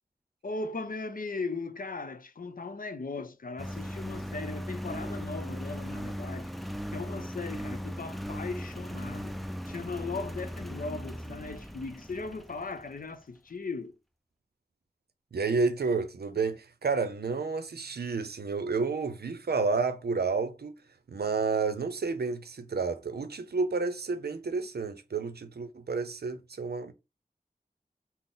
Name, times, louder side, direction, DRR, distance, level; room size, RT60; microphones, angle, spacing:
voice 1, 0.4-6.5 6.9-9.3 9.7-13.9, left 3 dB, 60° left, 0.5 m, -38 dB
Engine, 3.6-13.0, equal, ahead, 0.4 m, -38 dB
voice 2, 15.3-20.7 21.1-26.9, right 4 dB, 85° right, 0.5 m, -30 dB
3.9 x 2.0 x 3.7 m
wide cardioid pair, 40°, 16 cm